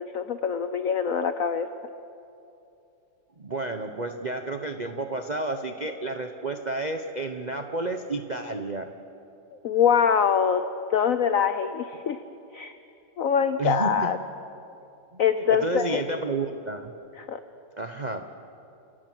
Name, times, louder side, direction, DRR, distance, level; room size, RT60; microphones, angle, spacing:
voice 1, 0.0-1.7 9.6-10.6 10.9-12.2 12.5-12.7 13.2-14.2 15.2-16.0 17.2-17.4, left 7 dB, 80° left, 10 dB, 0.7 m, -24 dB
voice 2, 3.4-8.9 13.6-13.9 15.1-15.2 15.5-17.0 17.8-18.2, right 2 dB, 60° right, 5 dB, 0.4 m, -31 dB
29.0 x 17.5 x 6.2 m, 2.7 s
omnidirectional pair, 2.3 m